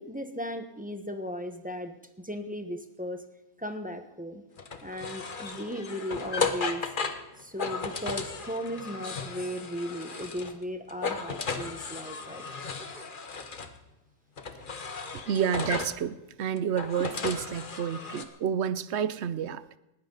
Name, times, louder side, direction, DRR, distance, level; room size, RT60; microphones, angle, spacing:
voice 1, 0.0-3.2 3.6-4.4 4.8-6.9 7.4-12.4, equal, 5° right, 6 dB, 1.1 m, -36 dB
sound 1, 4.6-10.6 10.9-13.7 14.4-16.0 16.6-18.2, left 4 dB, 35° left, 1.2 m, -35 dB
voice 2, 15.3-19.8, right 8 dB, 60° right, 16 dB, 0.8 m, -30 dB
20.0 x 15.5 x 4.0 m, 0.93 s
omnidirectional pair, 1.5 m